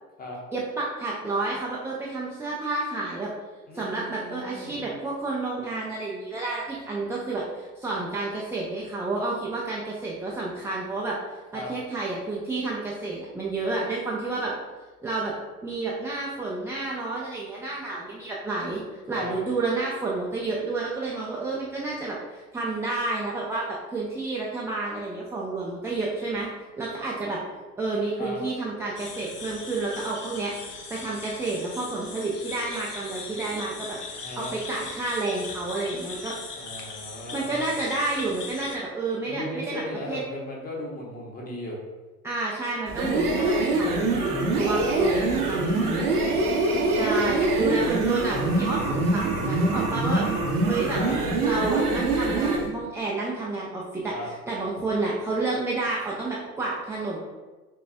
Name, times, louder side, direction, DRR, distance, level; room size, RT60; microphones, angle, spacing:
voice 1, 0.5-3.3 3.7-11.2 11.5-14.5 15.0-15.3 15.6-18.8 19.1-26.5 26.8-27.4 27.8-30.5 30.9-34.0 34.4-36.3 37.3-40.2 42.2-46.1 46.9-50.3 50.6-51.0 51.4-54.1 54.5-57.2, right 3 dB, 5° right, -5 dB, 0.5 m, -30 dB
voice 2, 3.7-4.8 11.5-11.7 19.1-19.3 28.2-28.4 34.2-34.6 36.5-37.7 39.3-41.8 45.0-45.1 46.6-47.8 51.0-51.2 54.1-54.3, left 1 dB, 20° left, -2 dB, 1.2 m, -37 dB
sound 1, 29.0-38.8, left 4 dB, 85° left, 0.6 m, -39 dB
sound 2, 42.9-52.7, right 2 dB, 75° right, 1.1 m, -24 dB
5.8 x 3.1 x 2.6 m, 1.2 s
figure-of-eight pair, 70°, 45 cm